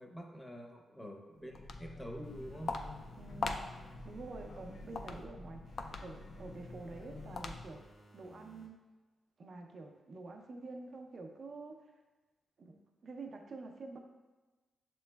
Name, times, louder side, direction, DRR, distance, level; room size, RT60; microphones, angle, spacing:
voice 1, 0.0-2.7, equal, 5° left, 2 dB, 0.6 m, -47 dB
Walk footsteps, 1.4-7.9, left 3 dB, 65° left, 0.3 m, -43 dB
sound 1, 2.2-5.2 5.6-8.7, equal, 80° left, 0.9 m, -60 dB
voice 2, 3.2-3.6 4.0-7.8 8.1-8.8 9.4-11.8 12.6-12.8 13.0-14.0, right 3 dB, 55° right, 3 dB, 0.5 m, -48 dB
7.0 x 3.0 x 2.2 m, 1.2 s
cardioid pair, 90°, 0 cm